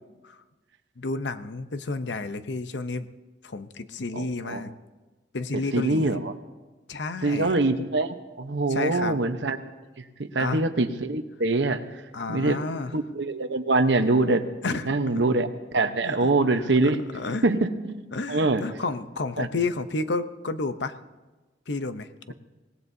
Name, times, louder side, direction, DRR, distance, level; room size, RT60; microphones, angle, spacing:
voice 1, 1.0-3.1 3.4-4.7 5.3-6.2 6.9-7.6 8.7-9.2 10.4-10.6 12.1-12.9 14.6-15.2 16.0-16.3 16.8-17.4 18.1-21.0 21.7-22.3, left 3 dB, 75° left, 10 dB, 0.8 m, -31 dB
voice 2, 4.1-4.6 5.5-6.3 7.2-9.6 10.0-11.8 12.3-12.6 12.9-14.5 14.8-15.5 15.7-17.1 17.4-18.0 18.3-18.6 19.4-19.5, right 2 dB, 75° right, 8 dB, 1.0 m, -24 dB
24.5 x 18.5 x 2.8 m, 1.2 s
head